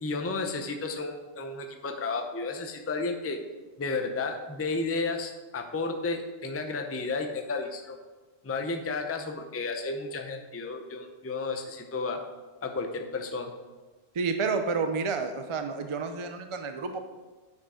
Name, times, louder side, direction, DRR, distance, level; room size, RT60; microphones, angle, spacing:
voice 1, 0.0-3.4 3.8-8.0 8.4-12.2 12.6-13.5, left 3 dB, 15° left, 4 dB, 0.5 m, -32 dB
voice 2, 14.1-17.0, right 4 dB, 45° right, 6 dB, 0.4 m, -30 dB
9.4 x 5.0 x 4.9 m, 1.2 s
omnidirectional pair, 1.2 m